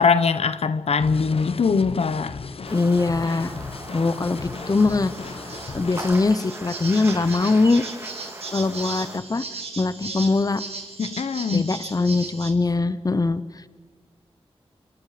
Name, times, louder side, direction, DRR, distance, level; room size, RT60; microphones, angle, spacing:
voice 1, 0.0-2.4 11.0-11.7, left 5 dB, 90° left, 13 dB, 1.0 m, -21 dB
sound 1, 1.0-6.1, left 4 dB, 65° left, 1.0 m, -36 dB
voice 2, 2.7-3.5 3.9-5.1 5.7-7.8 8.5-9.4 9.8-10.6 11.5-13.4, left 3 dB, 35° left, 14 dB, 0.9 m, -22 dB
sound 2, 2.7-9.2, right 1 dB, 25° right, 3.8 m, -39 dB
sound 3, 4.4-12.5, right 4 dB, 85° right, 3.4 m, -37 dB
29.5 x 26.0 x 5.1 m, 1.3 s
wide cardioid pair, 95°, 10 cm